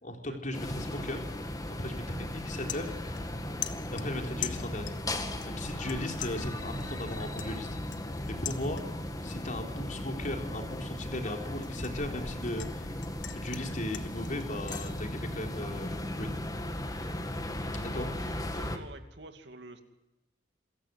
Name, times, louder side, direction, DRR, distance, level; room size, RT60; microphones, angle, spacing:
voice 1, 0.0-1.2 1.8-2.9 3.9-5.0 5.5-7.8 8.4-8.8 9.2-13.0 13.3-16.3 17.7-18.4, left 1 dB, 45° left, 3 dB, 4.1 m, -37 dB
sound 1, 0.5-18.8, left 1 dB, 20° left, 2.2 m, -37 dB
sound 2, 2.7-3.4 3.6-5.1 5.4-5.9 6.2-9.1 9.5-9.8 10.2-12.7 13.0-14.9, left 12 dB, 90° left, 1.6 m, -42 dB
voice 2, 17.9-19.8, right 2 dB, 70° right, 7 dB, 2.5 m, -49 dB
27.5 x 15.5 x 9.4 m, 0.99 s
head